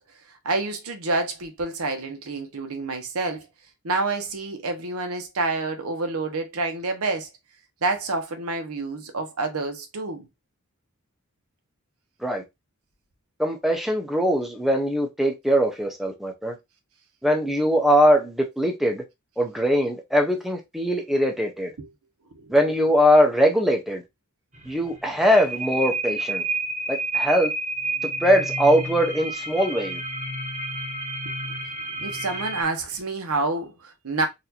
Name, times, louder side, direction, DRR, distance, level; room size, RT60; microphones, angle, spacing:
voice 1, 0.4-3.5 3.8-7.3 7.8-10.3 21.8-21.9 22.3-22.6 31.4-31.5 31.8-34.3, right 3 dB, 85° right, 0.9 m, -28 dB
voice 2, 13.4-16.6 17.2-19.0 19.4-21.7 22.5-24.0 24.7-26.4 26.9-27.5 28.2-30.0, equal, ahead, 0.5 m, -21 dB
sound 1, 24.5-32.6, right 2 dB, 35° right, 0.8 m, -30 dB
4.1 x 2.5 x 2.8 m
head